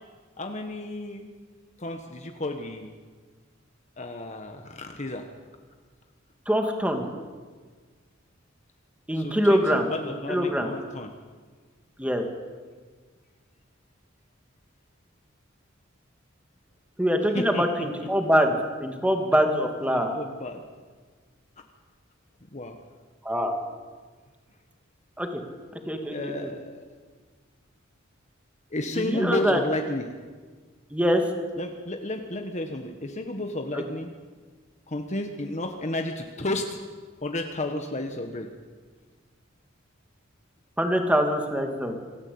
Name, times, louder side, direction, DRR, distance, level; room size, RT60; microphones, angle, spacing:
voice 1, 0.4-1.3 1.8-2.9 4.0-5.3 9.1-9.6 9.9-11.1 17.3-17.7 19.9-20.6 22.4-22.8 26.1-26.9 28.7-30.1 31.6-34.1 34.9-36.8 37.2-38.5, left 1 dB, 35° left, 4 dB, 1.4 m, -32 dB
voice 2, 6.5-7.1 9.1-10.7 12.0-12.2 17.0-20.1 23.2-23.5 25.2-25.3 25.9-26.3 28.9-29.6 30.9-31.2 40.8-41.9, equal, 5° right, 4 dB, 2.4 m, -24 dB
26.5 x 14.5 x 8.7 m, 1.5 s
head